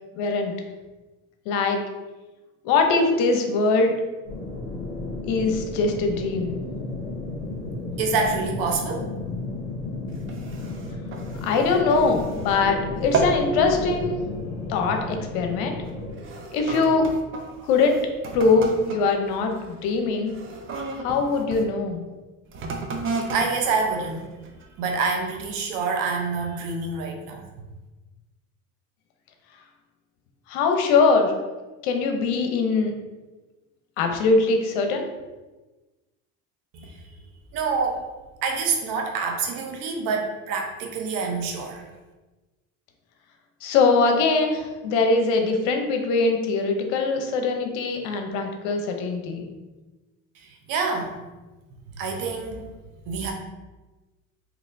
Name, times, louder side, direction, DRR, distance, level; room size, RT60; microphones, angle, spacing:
voice 1, 0.1-0.5 1.5-1.8 2.6-3.9 5.2-6.5 11.4-14.2 14.7-15.7 16.5-17.1 17.6-18.0 18.3-20.3 21.0-22.0 30.5-31.3 31.8-32.9 34.0-35.1 43.6-49.5, left 4 dB, 75° left, 4 dB, 0.8 m, -22 dB
sound 1, 4.2-16.2, left 2 dB, 50° left, 1.4 m, -33 dB
voice 2, 8.0-9.1 23.3-24.3 24.8-27.4 36.7-36.9 37.5-38.0 38.4-41.8 50.7-51.2 52.0-52.6 53.1-53.3, right 4 dB, 65° right, 2 dB, 0.8 m, -26 dB
sound 2, 10.1-12.7 13.0-13.5 13.9-14.2 14.9-15.1 15.8-21.7 22.4-24.8 25.4-25.5, right 3 dB, 35° right, 0.6 m, -33 dB
4.0 x 2.9 x 2.6 m, 1.2 s
supercardioid pair, 105°, 36 cm